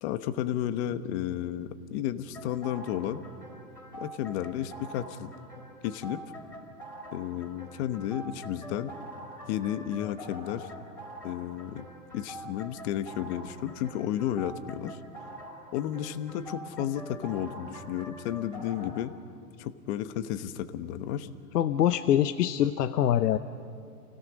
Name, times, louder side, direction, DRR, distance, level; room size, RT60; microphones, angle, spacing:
voice 1, 0.0-3.2 3.9-5.3 5.8-6.2 7.1-8.9 9.5-10.7 11.2-11.8 12.1-15.0 15.7-19.1 19.6-21.3, left 11 dB, 45° left, 11 dB, 1.2 m, -32 dB
sound 1, 2.3-19.0, equal, 5° left, 4.1 m, -45 dB
voice 2, 21.5-23.4, left 11 dB, 80° left, 10 dB, 0.9 m, -24 dB
29.0 x 17.0 x 6.3 m, 2.6 s
hypercardioid pair, 135°, 47 cm